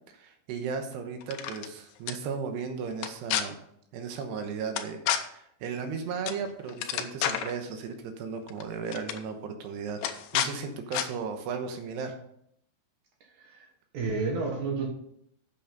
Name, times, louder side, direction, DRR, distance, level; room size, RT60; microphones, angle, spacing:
voice 1, 0.1-3.6 3.9-10.0 10.3-12.1, right 5 dB, 80° right, 6 dB, 3.1 m, -35 dB
sound 1, 1.2-1.7 2.1-2.2 3.0-3.4 4.8-5.2 6.3-6.4 6.7-7.5 8.5-8.6 8.9-9.2 10.0-10.5 10.9-11.1, left 10 dB, 80° left, 2.7 m, -29 dB
voice 2, 13.3-13.7 13.9-14.9, right 4 dB, 60° right, 2 dB, 2.3 m, -31 dB
8.5 x 6.9 x 5.2 m, 0.71 s
omnidirectional pair, 5.0 m